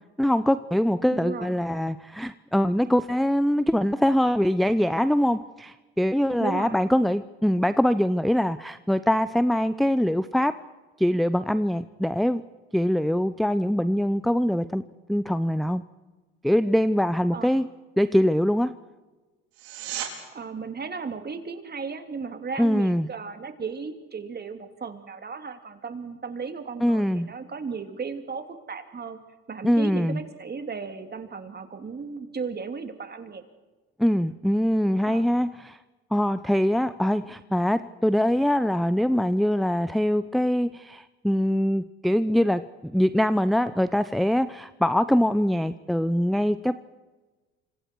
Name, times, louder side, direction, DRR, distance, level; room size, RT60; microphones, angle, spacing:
voice 1, 0.2-10.6 11.0-12.4 12.7-14.8 15.1-15.8 16.4-17.7 18.0-18.7 22.6-23.1 26.8-27.3 29.6-30.2 34.0-35.8 36.1-46.9, equal, ahead, 14 dB, 0.7 m, -23 dB
voice 2, 1.1-1.6 6.4-6.9 17.3-17.6 20.3-29.2 29.5-33.4 35.0-35.3, right 5 dB, 30° right, 7 dB, 3.1 m, -35 dB
sound 1, 19.5-20.1 31.5-31.6, right 10 dB, 85° right, 4.3 m, -34 dB
29.5 x 26.5 x 4.7 m, 1.3 s
hypercardioid pair, 70°, 31 cm